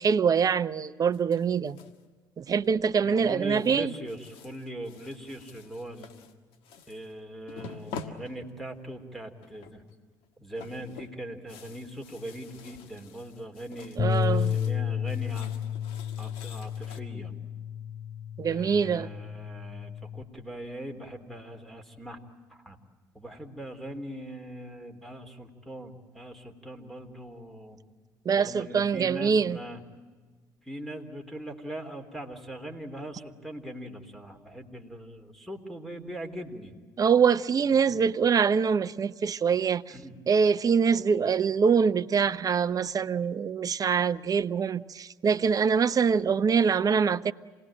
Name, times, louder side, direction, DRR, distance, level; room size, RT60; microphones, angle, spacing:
voice 1, 0.0-1.8 2.4-3.9 14.0-14.6 18.4-19.1 28.2-29.6 37.0-39.8 40.3-47.3, right 6 dB, 40° right, 0.8 m, -24 dB
sound 1, 1.1-2.0 2.5-2.9 3.5-7.1 7.5-8.9 9.4-9.9 10.2-14.8 15.1-17.0, left 6 dB, 70° left, 1.6 m, -47 dB
voice 2, 3.0-6.1 6.9-9.8 10.4-15.5 16.2-17.3 18.4-22.2 22.5-22.8 23.1-27.8 28.4-29.8 30.6-36.7 37.7-37.9 39.9-40.2, right 1 dB, ahead, 3.7 m, -41 dB
Bass guitar, 14.0-20.2, left 8 dB, 30° left, 3.4 m, -32 dB
27.0 x 19.0 x 8.9 m
hypercardioid pair, 60°, 10 cm